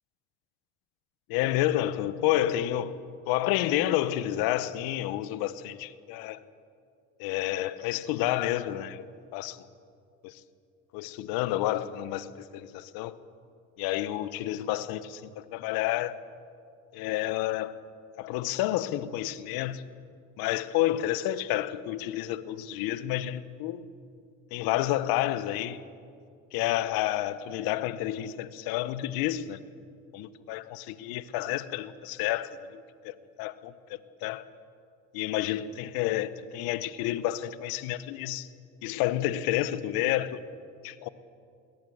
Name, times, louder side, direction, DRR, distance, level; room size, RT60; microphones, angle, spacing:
voice 1, 1.3-3.0 3.3-6.4 7.2-9.0 9.3-9.6 10.2-10.4 10.9-13.2 13.8-16.2 16.9-17.8 18.2-19.8 20.4-23.8 24.5-25.8 26.5-29.6 30.1-33.7 34.2-34.4 35.1-38.5 38.8-40.4 40.8-41.1, left 14 dB, 75° left, 1.1 m, -30 dB
22.0 x 18.5 x 8.0 m
hypercardioid pair, 70°, 36 cm